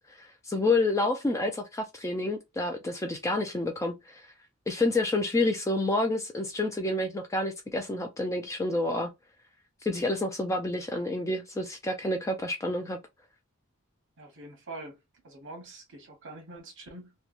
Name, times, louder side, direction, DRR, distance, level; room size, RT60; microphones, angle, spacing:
voice 1, 0.2-4.3 4.7-9.1 9.8-13.0, left 2 dB, 15° left, 0.3 m, -29 dB
voice 2, 14.2-15.0 15.2-17.1, right 2 dB, 60° right, 0.9 m, -44 dB
3.0 x 2.1 x 2.4 m
head